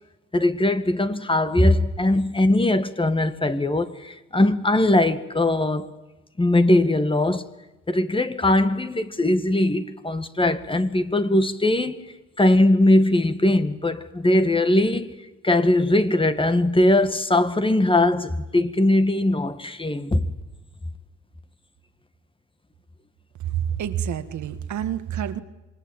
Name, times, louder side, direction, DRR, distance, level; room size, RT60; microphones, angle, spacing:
voice 1, 0.3-5.9 6.4-7.4 7.9-12.1 12.4-15.1 15.4-20.3, left 1 dB, 15° left, 1.9 m, -20 dB
voice 2, 23.6-25.4, right 9 dB, 70° right, 1.9 m, -28 dB
26.5 x 22.0 x 8.9 m
cardioid pair, 90°, 30 cm